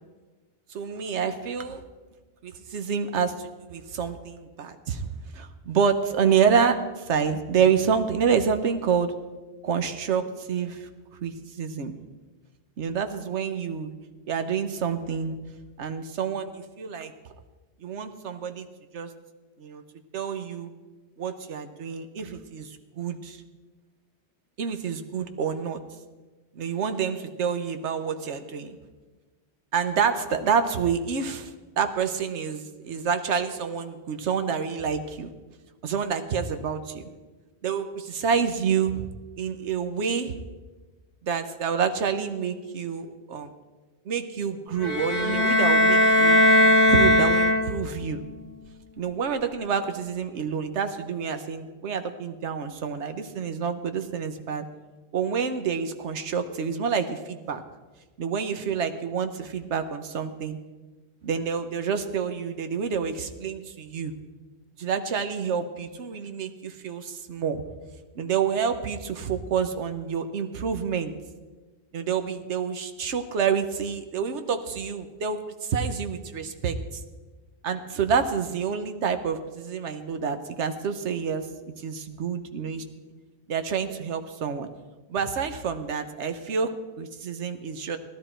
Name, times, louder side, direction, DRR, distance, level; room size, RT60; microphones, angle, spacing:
voice 1, 0.7-1.8 2.4-9.1 9.6-10.9 11.2-11.9 12.8-13.9 14.3-15.3 15.8-17.1 17.8-18.7 18.9-19.1 19.6-19.8 20.1-20.7 21.2-23.4 24.6-25.8 26.5-28.8 29.7-35.3 35.8-37.1 37.6-39.1 39.4-40.3 41.2-43.5 44.1-48.2 49.0-54.6 55.1-57.6 58.2-60.6 61.2-64.1 64.8-67.6 68.2-71.1 71.9-76.8 77.6-81.5 81.8-82.8 83.5-84.7 85.1-88.0, right 6 dB, 85° right, 9 dB, 1.2 m, -28 dB
sound 1, 44.8-48.0, left 1 dB, 55° left, 1.9 m, -19 dB
16.5 x 12.0 x 4.4 m, 1.3 s
omnidirectional pair, 1.1 m